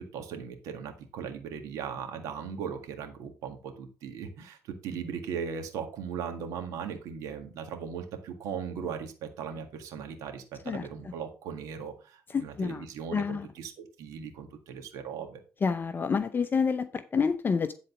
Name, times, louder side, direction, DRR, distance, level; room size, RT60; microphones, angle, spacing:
voice 1, 0.0-15.4, right 7 dB, 90° right, 1.8 m, -38 dB
voice 2, 12.3-12.8 13.1-13.5 15.6-17.7, left 5 dB, 35° left, 0.6 m, -28 dB
10.5 x 4.0 x 5.4 m
cardioid pair, 85°, 6 cm